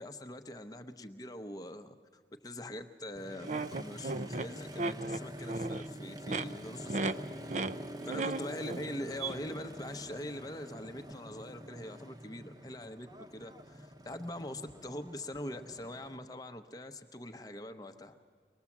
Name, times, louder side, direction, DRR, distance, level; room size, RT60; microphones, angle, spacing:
voice 1, 0.0-7.6 8.1-18.1, left 1 dB, 20° left, 8 dB, 0.8 m, -43 dB
Motorcycle, 3.2-16.2, equal, 20° right, 0.9 m, -47 dB
sound 1, 3.4-5.9 6.2-6.4 6.9-7.1 7.5-7.7 8.0-8.9 9.2-9.3, right 3 dB, 40° right, 0.5 m, -35 dB
23.5 x 20.0 x 7.2 m, 2.1 s
head